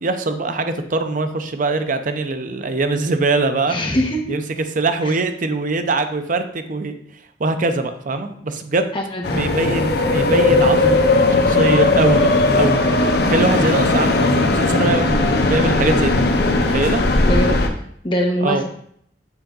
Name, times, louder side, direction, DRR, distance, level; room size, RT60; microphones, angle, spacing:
voice 1, 0.0-3.8 4.3-4.4 4.7-7.0 7.4-8.9 9.3-12.8 13.2-17.0 18.4-18.6, right 3 dB, 45° right, 8 dB, 0.6 m, -22 dB
voice 2, 3.7-4.2 5.1-5.2 8.9-9.4 17.2-17.6 18.0-18.6, equal, 30° left, 1 dB, 1.1 m, -22 dB
sound 1, 9.2-17.7, left 2 dB, 65° left, 0.7 m, -17 dB
7.2 x 3.8 x 3.8 m, 0.66 s
head